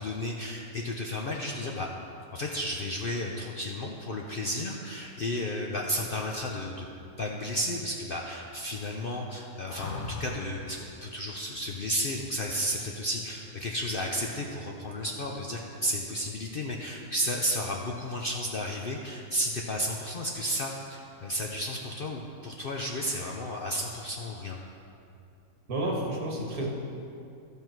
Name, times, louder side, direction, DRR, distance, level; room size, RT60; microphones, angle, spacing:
voice 1, 0.0-1.9 2.3-6.9 7.2-24.6, equal, 60° left, 0 dB, 0.5 m, -33 dB
sound 1, 9.7-10.6 13.2-13.8, left 3 dB, 45° left, 1.2 m, -38 dB
voice 2, 25.7-26.7, right 1 dB, 60° right, -2 dB, 1.9 m, -30 dB
14.0 x 5.7 x 4.5 m, 2.6 s
omnidirectional pair, 1.8 m